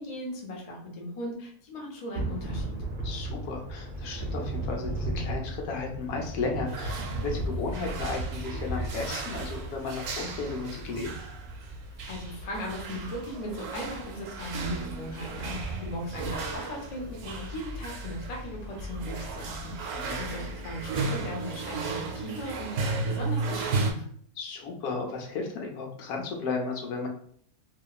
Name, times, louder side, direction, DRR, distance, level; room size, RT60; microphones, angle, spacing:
voice 1, 0.0-2.7 12.1-24.0, equal, 50° left, -1 dB, 0.4 m, -38 dB
Thunder / Rain, 2.1-21.2, right 1 dB, 50° right, 0.7 m, -37 dB
voice 2, 3.0-11.1 19.9-20.3 24.4-27.1, left 4 dB, 80° left, 1 dB, 1.1 m, -34 dB
sound 1, 6.7-23.9, right 3 dB, 80° right, 1.0 m, -35 dB
2.9 x 2.2 x 2.3 m, 0.63 s
omnidirectional pair, 1.6 m